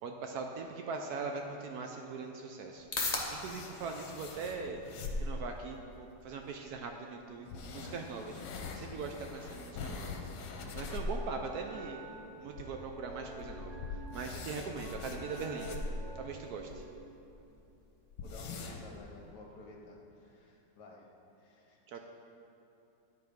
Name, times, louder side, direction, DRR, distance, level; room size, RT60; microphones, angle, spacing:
voice 1, 0.0-4.8 5.2-10.2 10.5-12.1 12.4-15.8 16.1-16.8 21.9-22.0, right 4 dB, 70° right, 3 dB, 1.0 m, -41 dB
sound 1, 1.4-18.4, left 3 dB, 35° left, 0.6 m, -47 dB
sound 2, 2.8-5.6 6.6-6.7 7.5-11.3 11.6-11.7 12.0-12.1 12.5-16.8 17.2-17.3 17.5-17.6 18.1-19.0, left 3 dB, 85° left, 1.4 m, -42 dB
sound 3, 11.3-16.9, right 4 dB, 30° right, 1.3 m, -49 dB
voice 2, 18.2-21.1 21.4-22.0, left 2 dB, 70° left, -1 dB, 1.6 m, -53 dB
10.5 x 3.9 x 5.1 m, 2.9 s
omnidirectional pair, 1.9 m